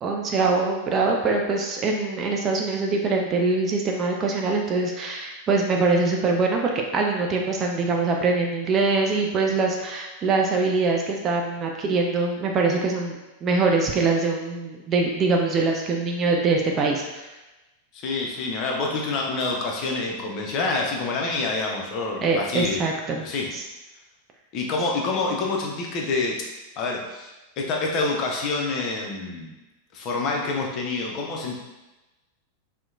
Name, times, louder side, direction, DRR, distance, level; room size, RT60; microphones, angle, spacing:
voice 1, 0.0-17.2 22.2-23.3 23.5-23.6, right 3 dB, 30° right, 1 dB, 0.3 m, -23 dB
voice 2, 17.9-22.8 23.2-23.5 24.5-26.5 26.8-27.3 27.6-29.5 29.9-31.6, left 3 dB, 40° left, 0 dB, 0.5 m, -27 dB
2.7 x 2.0 x 2.4 m, 1.1 s
figure-of-eight pair, 90°, 0 cm